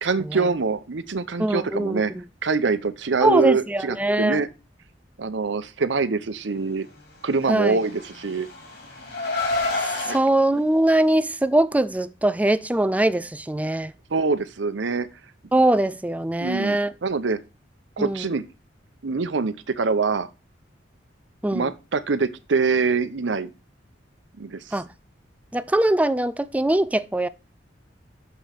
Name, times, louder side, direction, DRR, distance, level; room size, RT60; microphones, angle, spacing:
voice 1, 0.0-2.1 2.4-4.5 5.2-6.9 7.2-8.5 10.1-10.2 14.1-15.1 16.4-17.4 18.0-18.4 19.0-20.3 21.5-23.5 24.4-24.6, right 4 dB, 80° right, 0.7 m, -24 dB
voice 2, 1.4-2.2 3.2-4.4 7.5-7.8 10.1-13.9 15.5-16.9 18.0-18.3 21.4-21.7 24.7-24.9 25.5-27.3, right 1 dB, 10° right, 0.4 m, -22 dB
Car, 7.7-10.2, left 3 dB, 60° left, 2.7 m, -28 dB
6.8 x 5.0 x 5.8 m
head